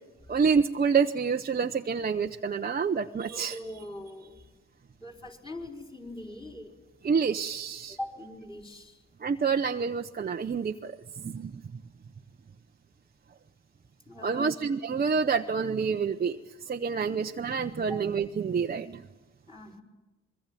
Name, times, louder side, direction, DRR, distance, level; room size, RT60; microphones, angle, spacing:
voice 1, 0.3-3.6 7.0-8.0 9.2-11.8 14.2-16.4 16.6-19.0, right 5 dB, 30° right, 4 dB, 0.9 m, -28 dB
voice 2, 3.3-4.4 5.0-6.8 7.9-9.0 14.1-14.5 17.9-18.0 19.5-19.8, left 1 dB, 15° left, 2 dB, 5.2 m, -41 dB
25.5 x 23.0 x 9.2 m, 1.1 s
cardioid pair, 90°, 30 cm